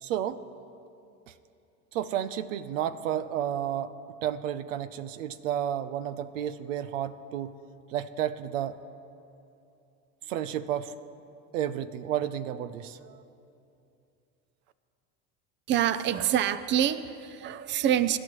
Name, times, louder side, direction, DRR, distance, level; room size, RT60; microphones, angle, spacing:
voice 1, 0.0-0.4 1.3-1.4 1.9-3.9 4.2-7.5 7.9-8.8 10.3-10.9 11.5-13.2, right 10 dB, 90° right, 13 dB, 0.7 m, -31 dB
voice 2, 15.7-18.2, right 10 dB, 30° right, 13 dB, 0.5 m, -26 dB
25.0 x 11.5 x 3.1 m, 2.7 s
supercardioid pair, 105°, 37 cm